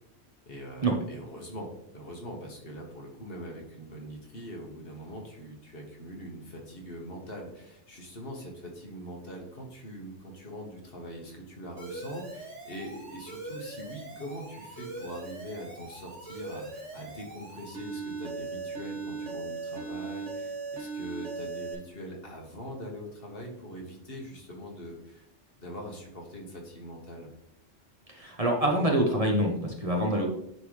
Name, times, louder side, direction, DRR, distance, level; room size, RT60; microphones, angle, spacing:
voice 1, 0.5-25.3 25.6-27.3, equal, 55° left, 0 dB, 1.5 m, -42 dB
Alarm, 11.8-21.7, right 3 dB, 80° right, 2.1 m, -39 dB
voice 2, 28.1-30.3, right 1 dB, 35° right, 0 dB, 1.0 m, -26 dB
9.9 x 3.8 x 3.2 m, 0.78 s
omnidirectional pair, 1.2 m